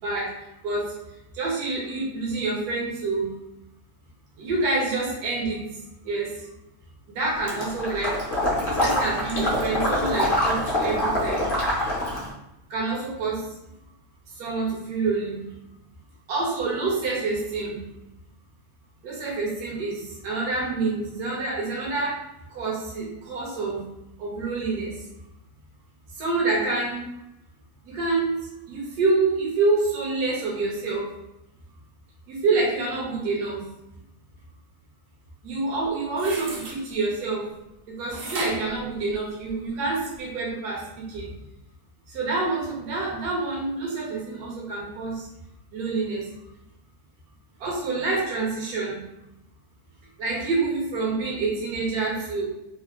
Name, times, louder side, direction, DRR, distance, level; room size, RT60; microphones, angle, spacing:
voice 1, 0.6-0.9 1.3-3.3 4.4-5.7 6.0-6.3 7.1-8.1 8.6-11.4 12.7-13.5 14.4-15.5 16.3-17.8 19.0-22.1 22.5-23.8 24.2-24.9 26.2-27.1 27.8-28.4 28.7-31.1 32.3-33.7 35.4-37.4 37.9-41.3 42.1-45.3 45.7-46.3 47.6-49.0 50.2-52.4, right 3 dB, 75° right, -3 dB, 1.3 m, -27 dB
Water / Liquid, 7.5-12.3, left 1 dB, 45° left, 0.7 m, -25 dB
sound 1, 36.1-36.8 38.1-39.7 40.1-40.2, right 2 dB, 60° right, 0.6 m, -35 dB
3.4 x 2.1 x 2.2 m, 0.88 s
omnidirectional pair, 1.7 m